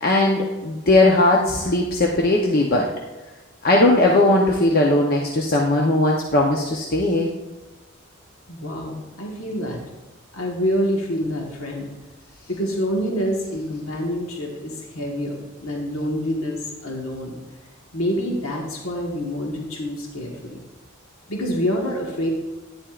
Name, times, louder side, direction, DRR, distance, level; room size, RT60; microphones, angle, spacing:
voice 1, 0.0-2.9 3.6-7.3, left 2 dB, 45° left, -1 dB, 0.8 m, -18 dB
voice 2, 8.5-9.8 10.3-11.9 12.5-17.4 17.9-20.6 21.3-22.3, equal, 85° left, -1 dB, 1.5 m, -27 dB
10.5 x 9.9 x 2.4 m, 1.1 s
head